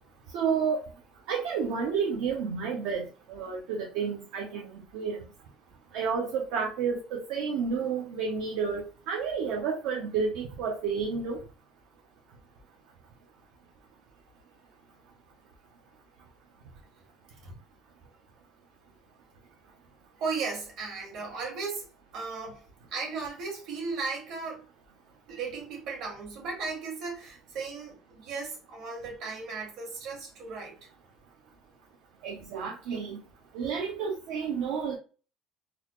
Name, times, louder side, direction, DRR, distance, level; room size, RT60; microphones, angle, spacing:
voice 1, 0.3-0.8 1.3-4.6 4.9-5.2 5.9-11.4 32.2-33.2 33.5-35.0, right 6 dB, 70° right, 0.8 m, -30 dB
voice 2, 20.2-22.6 22.9-24.6 25.3-30.8, right 4 dB, 55° right, 1.8 m, -36 dB
3.9 x 2.4 x 3.0 m
cardioid pair, 155°, 0 cm